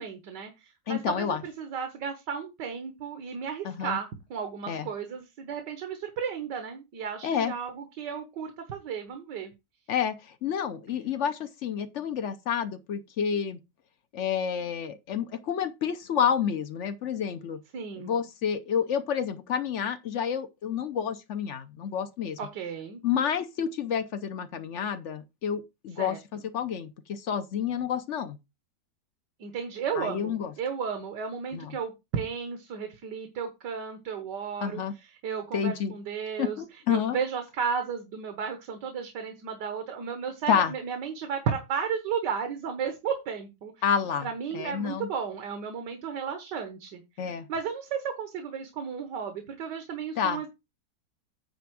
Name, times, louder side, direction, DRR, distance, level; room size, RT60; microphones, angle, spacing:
voice 1, 0.0-9.5 17.7-18.2 22.4-23.0 26.0-26.2 29.4-43.7 44.2-50.5, right 6 dB, 75° right, 1.8 m, -34 dB
voice 2, 0.9-1.4 3.6-4.0 4.7-4.9 7.2-7.5 9.9-13.6 14.1-17.6 18.0-22.4 23.0-28.4 30.0-30.5 31.5-31.8 34.6-34.9 35.5-35.9 36.4-37.2 40.5-40.7 43.8-44.3 44.5-45.1 47.2-47.5 50.2-50.4, left 8 dB, 60° left, 0.7 m, -29 dB
9.3 x 3.5 x 6.1 m
omnidirectional pair, 1.9 m